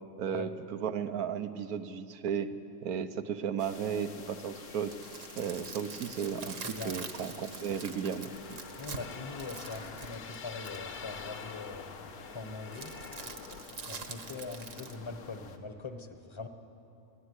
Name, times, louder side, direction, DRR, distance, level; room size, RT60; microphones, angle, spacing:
voice 1, 0.2-2.5 2.8-5.0 5.4-8.6, right 7 dB, 75° right, 10 dB, 1.4 m, -35 dB
sound 1, 3.6-15.6, left 4 dB, 70° left, 1.8 m, -50 dB
sound 2, 4.7-11.0 12.7-15.0, right 5 dB, 55° right, 1.6 m, -45 dB
voice 2, 6.4-7.0 8.8-12.9 13.9-16.5, left 3 dB, 20° left, 7 dB, 1.1 m, -42 dB
sound 3, 8.2-13.6, left 6 dB, 45° left, 0.9 m, -46 dB
23.0 x 15.5 x 9.8 m, 2.8 s
omnidirectional pair, 1.6 m